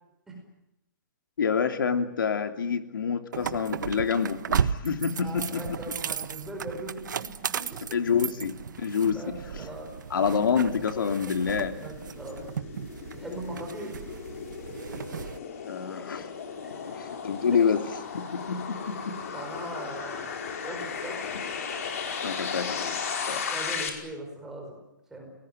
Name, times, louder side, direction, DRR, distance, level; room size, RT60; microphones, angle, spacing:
voice 1, 1.4-5.7 7.9-9.4 10.1-11.8 15.7-16.3 16.9-17.8 18.1-19.2 22.2-23.0 23.3-23.4, left 6 dB, 90° left, 6 dB, 2.9 m, -27 dB
sound 1, 3.3-15.4, right 7 dB, 65° right, 1.4 m, -35 dB
voice 2, 5.2-7.8 8.7-9.9 11.8-12.5 13.1-14.0 16.6-17.0 19.3-20.3 20.6-21.2 23.5-24.8 25.1-25.3, right 1 dB, 5° right, 0 dB, 5.1 m, -40 dB
sound 2, 10.7-23.9, left 6 dB, 45° left, 5.0 m, -36 dB
29.5 x 19.5 x 9.2 m, 0.89 s
hypercardioid pair, 180°, 11 cm